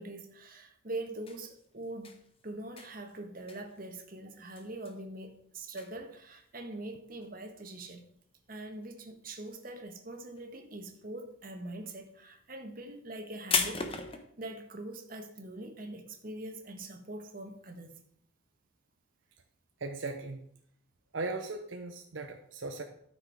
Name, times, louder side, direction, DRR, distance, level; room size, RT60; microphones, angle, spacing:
voice 1, 0.0-8.1 8.5-13.9 14.4-18.0, right 2 dB, 45° right, 1.4 m, -43 dB
sound 1, 1.1-9.0 9.3-10.0 10.3-14.2, left 5 dB, 30° left, 1.0 m, -37 dB
voice 2, 19.8-20.4 21.1-22.8, right 3 dB, 70° right, 0.8 m, -38 dB
12.0 x 6.3 x 4.7 m
head